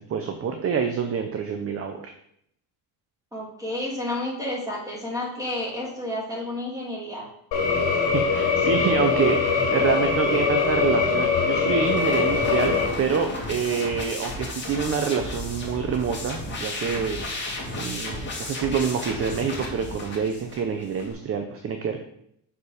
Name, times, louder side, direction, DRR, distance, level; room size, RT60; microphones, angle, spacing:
voice 1, 0.1-2.0 7.9-17.2 17.5-22.0, right 6 dB, 30° right, 5 dB, 0.6 m, -27 dB
voice 2, 3.3-7.3, left 1 dB, 10° right, -5 dB, 2.8 m, -31 dB
sound 1, 7.5-12.9, left 5 dB, 70° left, 2.7 m, -22 dB
sound 2, 11.9-21.1, left 1 dB, 25° left, 2.1 m, -34 dB
6.7 x 4.2 x 5.0 m, 0.71 s
cardioid pair, 120°, 45 cm